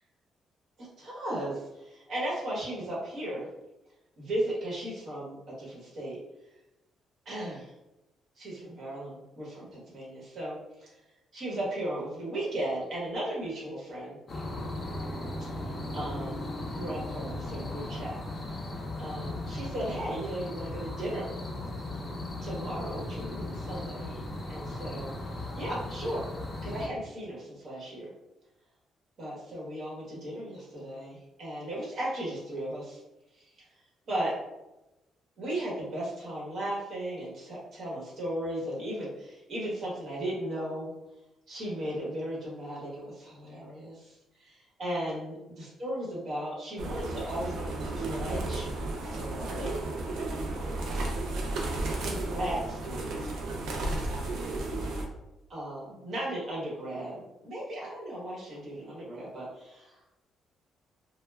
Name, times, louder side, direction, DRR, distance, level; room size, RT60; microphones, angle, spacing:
voice 1, 1.0-3.5 4.2-6.2 7.2-7.7 8.4-10.9 11.3-14.2 15.4-16.4 16.7-18.2 19.0-21.3 22.4-24.2 24.5-26.3 26.6-28.1 29.2-33.0 33.3-33.5 34.1-34.4 35.4-40.9 41.5-48.7 49.0-49.8 52.0-53.1 55.5-60.0, right 1 dB, 60° right, -6 dB, 1.0 m, -36 dB
sound 1, 14.3-26.9, left 1 dB, 35° left, 0.5 m, -37 dB
sound 2, 46.8-55.0, right 2 dB, 80° right, 0.5 m, -33 dB
2.2 x 2.1 x 3.2 m, 0.97 s
cardioid pair, 90°, 0 cm